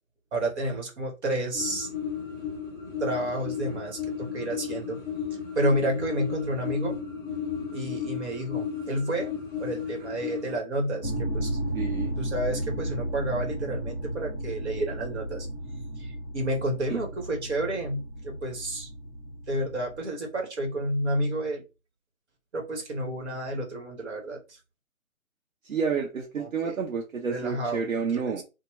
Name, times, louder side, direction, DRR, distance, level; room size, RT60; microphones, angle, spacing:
voice 1, 0.3-1.9 3.0-5.0 5.5-7.0 7.7-9.3 9.6-11.6 12.2-15.5 16.0-18.9 19.5-21.6 22.5-24.4 26.4-26.8 27.3-28.4, right 1 dB, 50° right, 1.2 m, -30 dB
sound 1, 1.5-10.6, left 7 dB, 15° right, 0.8 m, -34 dB
sound 2, 11.0-20.0, right 1 dB, 25° left, 0.5 m, -34 dB
voice 2, 11.7-12.1 16.9-17.0 25.6-28.4, right 6 dB, 70° right, 0.8 m, -30 dB
2.9 x 2.2 x 3.0 m
figure-of-eight pair, 145°, 42 cm